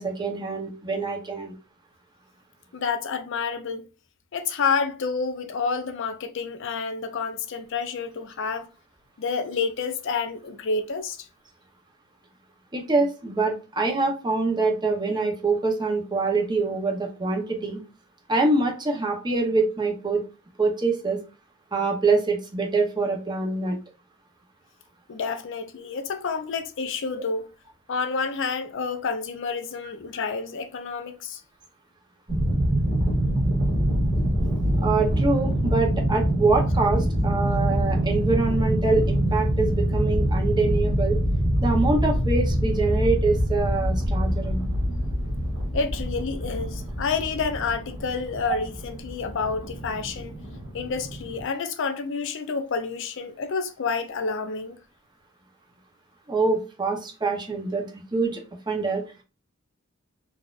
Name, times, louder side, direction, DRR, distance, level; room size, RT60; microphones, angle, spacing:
voice 1, 0.0-1.5 12.7-17.8 18.3-20.2 20.6-21.2 21.7-23.8 34.8-41.2 41.6-44.6 48.5-48.6 56.3-59.0, right 3 dB, 20° right, 0.7 m, -25 dB
voice 2, 2.7-3.9 4.3-8.7 9.2-11.3 25.1-27.5 27.9-31.4 45.7-50.4 50.7-54.8, left 5 dB, 60° left, 0.5 m, -29 dB
sound 1, 32.3-51.4, equal, 35° right, 1.6 m, -25 dB
4.0 x 2.4 x 2.4 m
head